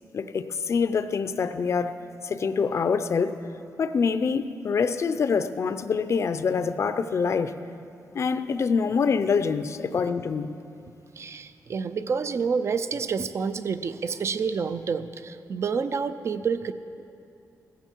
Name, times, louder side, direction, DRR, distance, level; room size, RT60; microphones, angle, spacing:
voice 1, 0.1-2.0 2.2-3.4 3.8-7.6 8.1-10.5, left 5 dB, 50° left, 11 dB, 0.6 m, -25 dB
voice 2, 11.2-16.7, right 5 dB, 45° right, 12 dB, 0.5 m, -28 dB
15.5 x 14.5 x 4.6 m, 2.6 s
wide cardioid pair, 135°, 6 cm